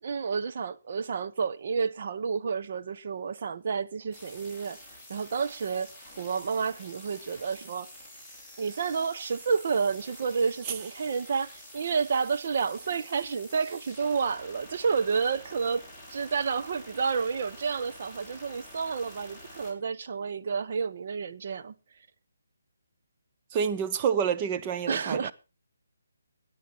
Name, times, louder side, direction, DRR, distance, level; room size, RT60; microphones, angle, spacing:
voice 1, 0.0-4.8 5.1-7.9 8.6-21.7 24.9-25.3, right 5 dB, 50° right, 1.0 m, -30 dB
sound 1, 4.1-19.7, left 1 dB, 5° right, 5.3 m, -48 dB
voice 2, 23.5-25.3, right 7 dB, 25° right, 0.9 m, -28 dB
18.5 x 9.0 x 4.3 m
hypercardioid pair, 155°, 0 cm